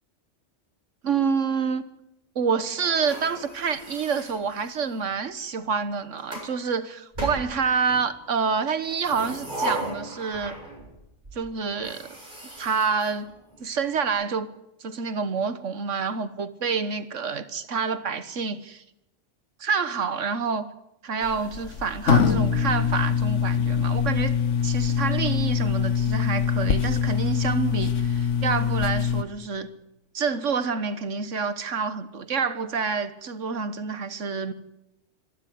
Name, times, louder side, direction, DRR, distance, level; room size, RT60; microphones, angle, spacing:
voice 1, 1.0-1.9 2.3-10.6 11.3-12.1 12.6-13.3 13.6-14.5 14.8-18.8 19.6-20.7 21.0-24.4 24.6-29.7 30.1-34.5, right 5 dB, 85° right, 1.6 m, -27 dB
sound 1, 2.8-5.1 5.8-6.5 7.1-8.1 8.8-10.9 11.2-11.3 11.7-13.8, right 1 dB, 40° right, 7.6 m, -36 dB
sound 2, 21.2-29.2, left 7 dB, 80° left, 1.6 m, -24 dB
26.0 x 12.0 x 9.3 m
omnidirectional pair, 1.2 m